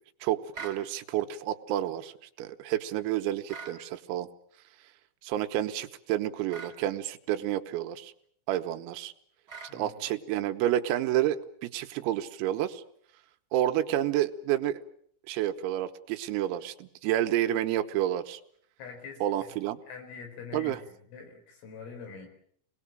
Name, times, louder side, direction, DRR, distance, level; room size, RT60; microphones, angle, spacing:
voice 1, 0.2-4.3 5.2-8.1 8.5-9.1 9.7-12.8 13.5-14.8 15.3-18.4 19.2-19.8 20.5-20.8, right 12 dB, 90° right, 8 dB, 3.9 m, -30 dB
sound 1, 0.5-0.8 3.5-3.8 6.5-6.8 9.5-9.8, right 5 dB, 25° right, 3.0 m, -42 dB
voice 2, 9.7-10.0 18.8-19.5 19.9-20.8 21.1-22.3, left 5 dB, 75° left, 5 dB, 7.3 m, -44 dB
27.0 x 19.5 x 7.5 m, 0.64 s
omnidirectional pair, 6.0 m